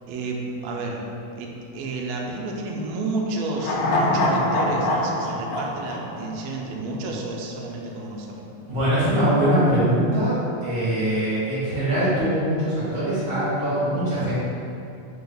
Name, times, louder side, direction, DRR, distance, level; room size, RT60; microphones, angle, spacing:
voice 1, 0.1-1.0 1.4-8.5, right 2 dB, 90° right, -1 dB, 1.4 m, -31 dB
sound 1, 3.5-6.9 7.2-7.3, left 1 dB, 85° left, 1.4 m, -24 dB
voice 2, 8.7-14.4, right 1 dB, 50° right, -13 dB, 0.6 m, -22 dB
4.8 x 3.3 x 2.3 m, 2.7 s
omnidirectional pair, 3.4 m